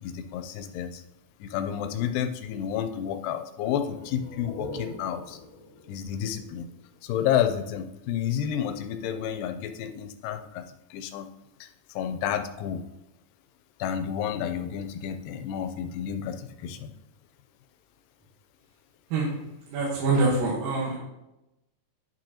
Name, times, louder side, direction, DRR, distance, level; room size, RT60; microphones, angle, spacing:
voice 1, 0.0-1.0 1.4-5.4 5.9-6.7 7.0-10.6 10.9-11.3 11.6-12.8 13.8-16.9, left 9 dB, 90° left, 8 dB, 2.3 m, -30 dB
sound 1, 3.9-7.4, left 2 dB, 60° left, 1.3 m, -43 dB
voice 2, 19.7-21.0, right 3 dB, 85° right, -5 dB, 3.0 m, -25 dB
8.9 x 7.9 x 2.9 m, 0.93 s
omnidirectional pair, 3.9 m